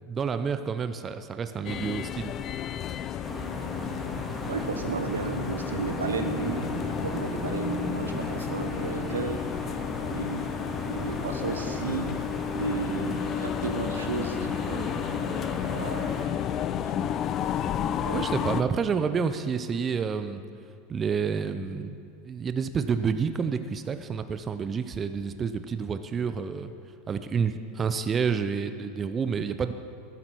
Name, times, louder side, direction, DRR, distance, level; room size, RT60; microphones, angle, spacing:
voice 1, 0.1-2.3 18.1-20.4 20.9-22.0 22.2-26.7 27.1-29.7, right 6 dB, 25° right, 10 dB, 0.5 m, -29 dB
sound 1, 1.6-18.6, left 9 dB, 40° left, 0.5 m, -32 dB
sound 2, 3.2-16.3, equal, ahead, 1.8 m, -36 dB
voice 2, 4.4-6.7 7.0-9.4 10.1-10.5 10.9-12.2 12.5-15.0 15.7-16.1 16.8-17.2 17.5-17.7 18.0-18.3, right 4 dB, 80° right, 7 dB, 0.8 m, -33 dB
13.0 x 12.0 x 4.5 m, 2.3 s
figure-of-eight pair, 85°, 0 cm